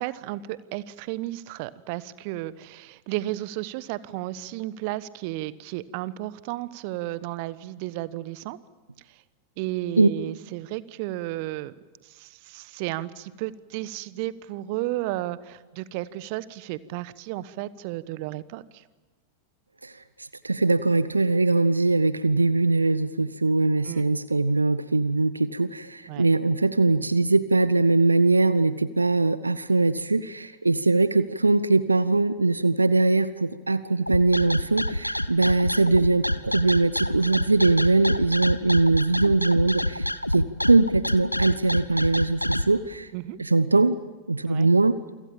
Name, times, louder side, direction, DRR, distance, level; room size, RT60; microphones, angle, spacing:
voice 1, 0.0-8.6 9.6-11.7 12.0-18.8 23.8-24.0 26.1-26.3 43.1-43.4 44.4-44.7, right 16 dB, 45° right, 18 dB, 1.1 m, -33 dB
voice 2, 20.2-43.1 43.4-44.0 44.3-45.0, right 3 dB, 80° right, 16 dB, 0.8 m, -21 dB
sound 1, 34.1-42.7, left 1 dB, 90° left, 1.0 m, -27 dB
28.0 x 26.0 x 7.2 m, 1.3 s
figure-of-eight pair, 90°, 0 cm